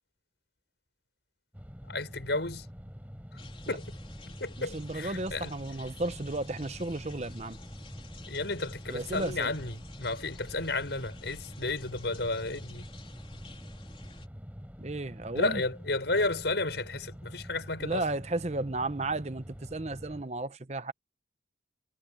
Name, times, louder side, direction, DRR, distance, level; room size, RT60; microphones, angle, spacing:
sound 1, 1.5-20.2, equal, 10° right, 5.6 m, -46 dB
voice 1, 1.8-2.7 3.7-4.0 4.4-5.5 8.3-12.9 15.3-18.0, left 2 dB, 70° left, 5.5 m, -32 dB
sound 2, 3.4-14.3, left 2 dB, 30° left, 3.8 m, -50 dB
voice 2, 4.7-7.6 8.9-9.5 14.8-15.6 17.8-20.9, right 2 dB, 35° right, 0.9 m, -34 dB
head